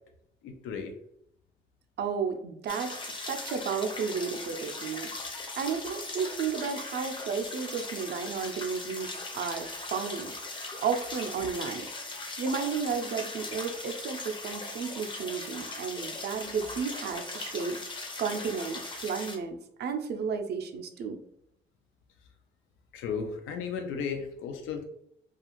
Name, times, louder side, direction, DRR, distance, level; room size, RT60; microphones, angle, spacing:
voice 1, 0.4-0.9 22.9-24.9, left 6 dB, 90° left, 5 dB, 0.5 m, -35 dB
voice 2, 2.0-17.8 18.2-21.2, right 6 dB, 55° right, 5 dB, 0.4 m, -33 dB
sound 1, 2.7-19.4, left 2 dB, 25° left, 0.5 m, -39 dB
2.4 x 2.4 x 2.9 m, 0.76 s
cardioid pair, 90°, 20 cm